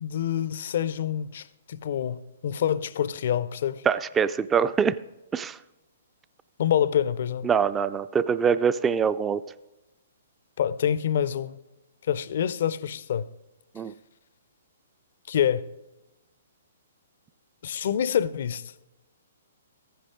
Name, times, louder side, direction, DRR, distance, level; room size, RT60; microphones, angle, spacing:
voice 1, 0.0-3.8 6.6-7.5 10.6-11.6 12.1-13.3 15.3-15.6 17.6-18.6, left 9 dB, 60° left, 0.5 m, -26 dB
voice 2, 3.9-5.0 5.3-5.6 7.4-9.4 13.8-13.9, right 6 dB, 15° right, 0.4 m, -24 dB
14.5 x 10.0 x 3.6 m
figure-of-eight pair, 125°, 0 cm